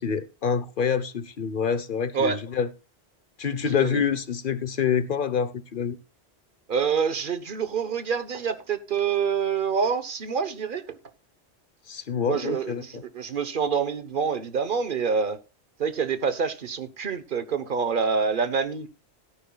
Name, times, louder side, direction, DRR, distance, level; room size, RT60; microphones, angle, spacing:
voice 1, 0.0-2.7 3.4-6.0 11.9-12.8, left 7 dB, 55° left, 1.1 m, -26 dB
voice 2, 6.7-11.0 12.3-15.4 15.8-18.9, right 6 dB, 55° right, 1.2 m, -26 dB
17.0 x 10.0 x 2.3 m
omnidirectional pair, 1.1 m